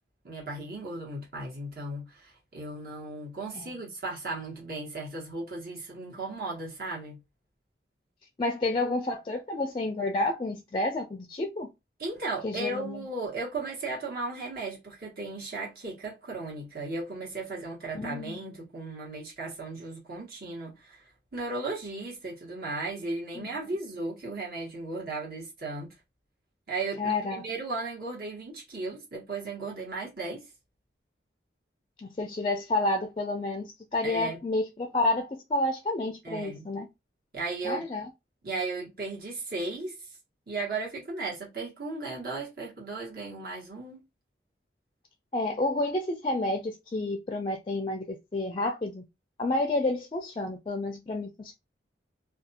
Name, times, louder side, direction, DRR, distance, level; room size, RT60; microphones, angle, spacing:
voice 1, 0.2-7.2 12.0-21.0 21.3-25.9 26.7-30.4 34.0-34.4 36.2-36.7 37.3-37.8 38.4-39.9 40.5-44.0, right 3 dB, 55° right, 1.2 m, -36 dB
voice 2, 8.4-11.7 12.4-13.0 17.9-18.4 23.4-23.5 27.0-27.4 32.0-36.9 37.6-38.1 45.3-49.0 49.4-51.5, left 2 dB, 30° left, 0.4 m, -30 dB
2.5 x 2.3 x 2.7 m
head